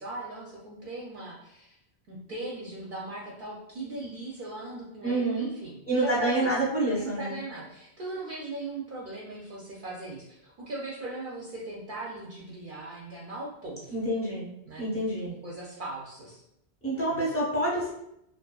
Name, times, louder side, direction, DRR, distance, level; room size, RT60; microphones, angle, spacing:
voice 1, 0.0-1.8 2.1-6.5 7.0-13.9 14.7-15.0 15.3-16.4 17.1-17.3, right 2 dB, 60° right, -4 dB, 0.6 m, -39 dB
voice 2, 5.0-5.5 5.9-7.4 13.9-14.5 14.8-15.3 16.8-17.9, right 1 dB, 15° left, -6 dB, 0.7 m, -27 dB
2.6 x 2.3 x 2.2 m, 0.79 s
omnidirectional pair, 1.1 m